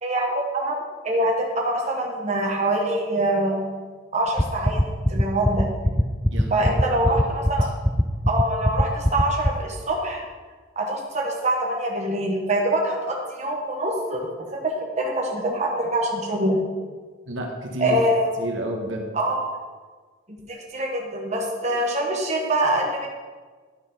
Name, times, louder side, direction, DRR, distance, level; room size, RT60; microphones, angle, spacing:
voice 1, 0.0-0.7 1.0-3.6 4.1-4.8 5.1-5.7 6.5-7.7 8.3-10.2 10.7-16.6 17.8-18.3 19.1-19.5 20.3-23.1, right 1 dB, 35° right, -1 dB, 1.3 m, -24 dB
sound 1, 4.4-9.5, equal, ahead, 0.3 m, -19 dB
voice 2, 6.3-7.2 7.6-7.7 17.3-18.0 18.4-19.1, right 1 dB, 70° right, 0 dB, 1.3 m, -31 dB
11.0 x 4.1 x 5.3 m, 1.4 s
head